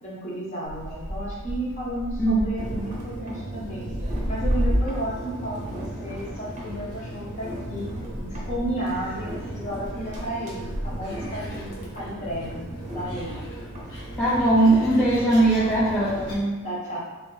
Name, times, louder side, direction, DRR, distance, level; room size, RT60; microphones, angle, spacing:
voice 1, 0.0-3.9 4.3-7.9 8.2-12.7 12.9-13.4 16.0-16.3 16.6-17.0, right 1 dB, 30° left, -6 dB, 1.0 m, -33 dB
Gull seagull, 0.6-16.4, equal, 70° left, 1.1 m, -34 dB
sound 1, 2.6-16.4, right 1 dB, 30° right, 0.7 m, -37 dB
voice 2, 14.2-16.6, right 2 dB, 5° left, -9 dB, 0.4 m, -20 dB
3.4 x 3.2 x 3.1 m, 1.3 s
head